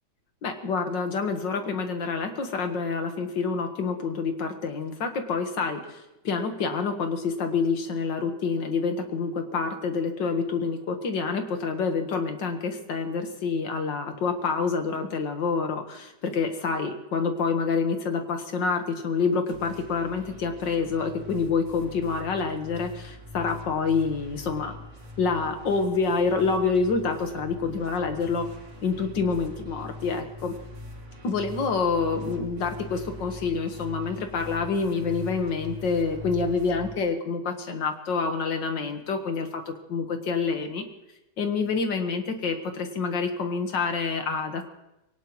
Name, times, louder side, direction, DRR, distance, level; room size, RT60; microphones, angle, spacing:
voice 1, 0.4-24.7 25.2-28.5 28.8-30.5 31.2-39.6 39.9-40.8 41.4-44.6, left 4 dB, 80° left, 6 dB, 2.1 m, -27 dB
sound 1, 19.5-36.9, left 3 dB, 45° right, 2.4 m, -42 dB
22.0 x 18.0 x 3.1 m, 0.91 s
omnidirectional pair, 1.9 m